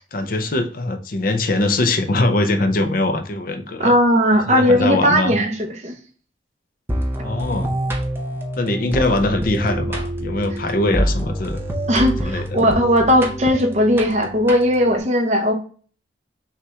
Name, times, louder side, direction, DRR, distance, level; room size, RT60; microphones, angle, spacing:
voice 1, 0.1-3.9 4.5-5.3 7.2-7.7 8.6-11.6 12.2-12.7, left 2 dB, 45° left, 8 dB, 0.5 m, -22 dB
voice 2, 3.8-5.9 11.9-15.5, equal, 35° right, 2 dB, 0.8 m, -17 dB
sound 1, 6.9-15.0, right 1 dB, 10° right, 0.6 m, -26 dB
5.6 x 2.4 x 3.1 m, 0.42 s
head